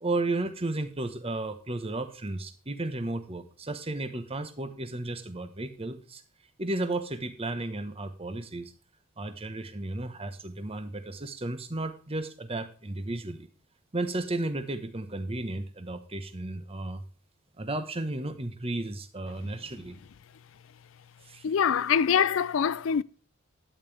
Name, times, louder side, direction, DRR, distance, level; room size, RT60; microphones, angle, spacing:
voice 1, 0.0-6.2 6.6-8.7 9.2-13.5 13.9-17.0 17.6-20.0 21.3-21.4, right 2 dB, 25° right, 1.1 m, -33 dB
voice 2, 21.4-23.0, left 7 dB, 60° left, 0.4 m, -24 dB
12.5 x 9.0 x 3.4 m
head